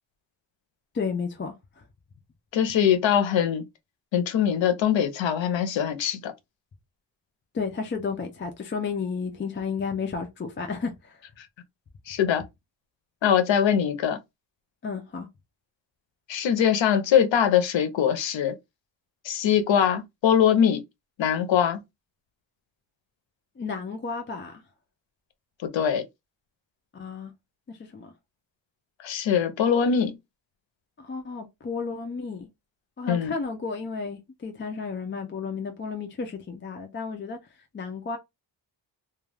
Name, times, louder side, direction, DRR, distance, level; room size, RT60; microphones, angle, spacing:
voice 1, 0.9-1.5 7.5-11.2 14.8-15.3 23.6-24.6 26.9-27.3 27.7-28.1 31.0-32.5 33.0-37.4 37.7-38.2, left 5 dB, 25° left, 0.4 m, -32 dB
voice 2, 2.5-3.6 4.1-6.3 12.1-12.4 13.2-14.2 16.3-18.5 19.2-20.8 21.2-21.8 25.6-26.0 29.0-30.1 33.1-33.3, left 8 dB, 80° left, 0.7 m, -22 dB
2.3 x 2.2 x 3.2 m
wide cardioid pair, 130°, 45 cm